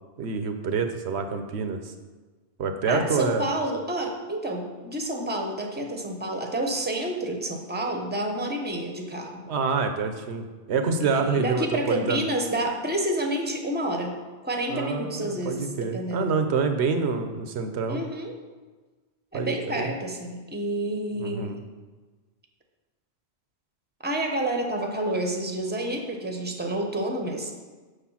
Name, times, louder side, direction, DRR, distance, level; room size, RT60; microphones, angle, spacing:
voice 1, 0.2-1.9 2.6-3.5 9.5-12.3 14.7-18.0 19.3-19.9 21.2-21.6, right 4 dB, 75° right, 7 dB, 1.1 m, -27 dB
voice 2, 2.9-9.5 11.0-14.2 14.4-16.3 17.9-18.4 19.3-21.6 24.0-27.5, right 1 dB, 10° right, 2 dB, 1.0 m, -29 dB
6.9 x 6.5 x 5.7 m, 1.3 s
omnidirectional pair, 1.1 m